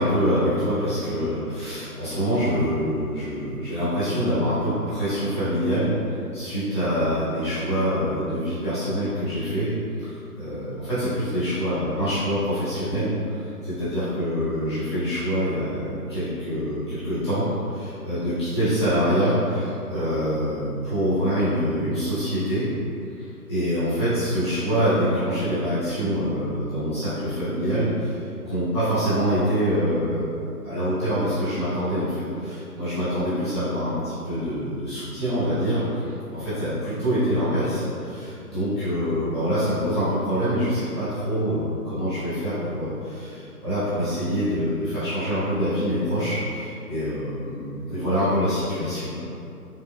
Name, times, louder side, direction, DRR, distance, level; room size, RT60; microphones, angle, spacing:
voice 1, 0.0-9.7 10.0-22.7 23.2-30.3 30.6-49.3, equal, 20° left, -18 dB, 1.0 m, -25 dB
4.7 x 2.2 x 2.2 m, 2.6 s
hypercardioid pair, 165°, 47 cm